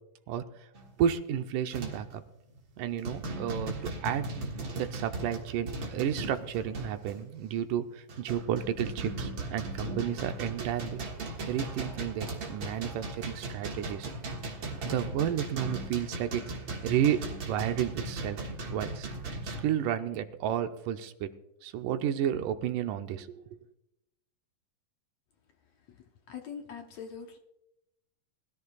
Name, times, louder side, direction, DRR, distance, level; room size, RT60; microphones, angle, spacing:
sound 1, 0.7-1.0 1.7-2.1 2.6-2.7 3.0-7.2 7.8-19.6, right 2 dB, 45° right, 2.0 m, -38 dB
voice 1, 1.0-2.2 2.8-4.3 4.8-11.0 11.5-14.1 14.8-16.4 16.8-18.4 18.7-19.1 19.4-21.3 21.6-23.3, right 9 dB, 80° right, 8 dB, 2.2 m, -31 dB
voice 2, 26.3-27.4, left 7 dB, 70° left, 3 dB, 1.8 m, -42 dB
22.0 x 13.5 x 2.3 m, 0.87 s
omnidirectional pair, 3.9 m